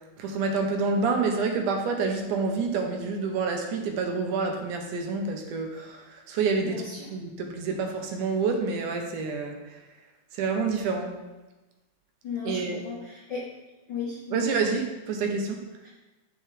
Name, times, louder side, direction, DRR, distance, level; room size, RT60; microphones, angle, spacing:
voice 1, 0.2-6.8 7.1-9.6 10.3-11.1 12.5-12.8 14.3-15.6, right 4 dB, 75° right, 3 dB, 2.3 m, -28 dB
voice 2, 6.6-7.1 12.2-13.5 13.9-14.5 15.8-15.9, left 5 dB, 60° left, -7 dB, 1.2 m, -36 dB
9.1 x 6.5 x 3.3 m, 1.1 s
omnidirectional pair, 3.7 m